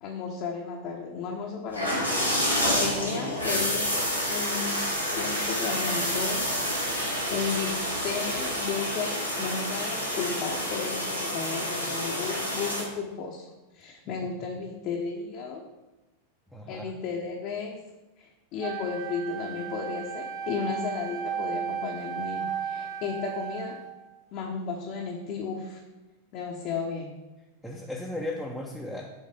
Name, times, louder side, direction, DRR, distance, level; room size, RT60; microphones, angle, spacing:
voice 1, 0.0-2.5 2.8-3.9 4.3-4.8 5.1-7.8 8.0-9.1 9.4-13.5 13.7-15.6 16.7-17.8 18.2-23.8 24.3-25.8 26.3-27.1, left 5 dB, 40° left, -1 dB, 0.8 m, -34 dB
sound 1, 1.7-12.8, equal, 90° right, 1.5 m, -29 dB
Wind, 3.7-8.7, right 4 dB, 55° right, 0.9 m, -41 dB
voice 2, 16.5-16.8 27.6-29.1, left 1 dB, ahead, -1 dB, 0.8 m, -36 dB
Wind instrument woodwind instrument, 18.6-24.1, right 7 dB, 25° right, 1.3 m, -35 dB
7.4 x 3.6 x 5.1 m, 1.1 s
figure-of-eight pair, 90°, 0 cm